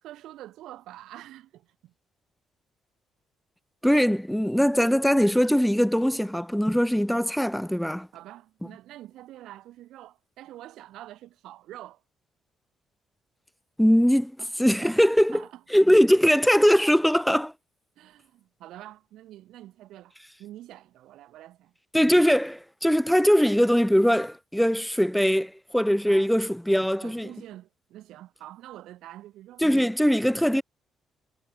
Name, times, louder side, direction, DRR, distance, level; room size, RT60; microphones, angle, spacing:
voice 1, 0.0-1.9 6.2-6.3 8.1-12.0 14.4-14.5 14.8-15.0 15.3-15.6 18.0-20.1 20.4-21.7 26.0-26.3 27.0-29.6, right 14 dB, 85° right, 3.1 m, -46 dB
voice 2, 3.8-8.1 13.8-14.3 14.6-15.4 15.7-17.5 21.9-27.3 29.6-30.6, equal, ahead, 0.3 m, -21 dB
cardioid pair, 90°, 0 cm